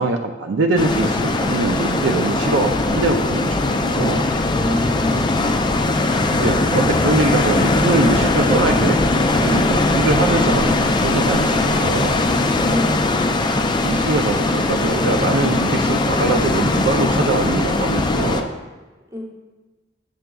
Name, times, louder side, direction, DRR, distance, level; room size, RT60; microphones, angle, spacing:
voice 1, 0.0-4.3 6.3-12.2 13.8-18.5, right 3 dB, 75° right, 5 dB, 0.4 m, -22 dB
sound 1, 0.8-18.4, left 2 dB, 25° left, 0.3 m, -19 dB
voice 2, 4.5-5.5 12.7-13.1 19.1-19.2, left 1 dB, 20° right, 0 dB, 0.9 m, -29 dB
7.6 x 6.9 x 2.3 m, 1.2 s
head